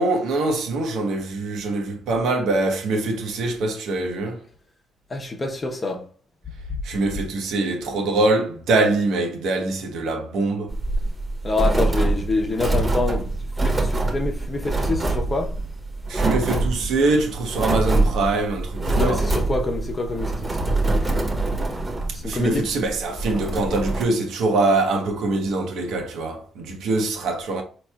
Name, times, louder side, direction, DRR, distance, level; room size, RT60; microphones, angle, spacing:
voice 1, 0.0-4.4 6.8-10.7 16.1-19.3 22.2-27.6, right 2 dB, 80° right, 0.8 m, -23 dB
voice 2, 5.1-6.0 11.4-13.3 13.6-15.5 19.0-20.6 20.8-21.3 22.1-22.7, left 3 dB, 30° left, 0.8 m, -26 dB
sound 1, 10.7-24.0, right 2 dB, 25° right, 0.9 m, -24 dB
4.1 x 3.0 x 2.3 m
cardioid pair, 90°, 0 cm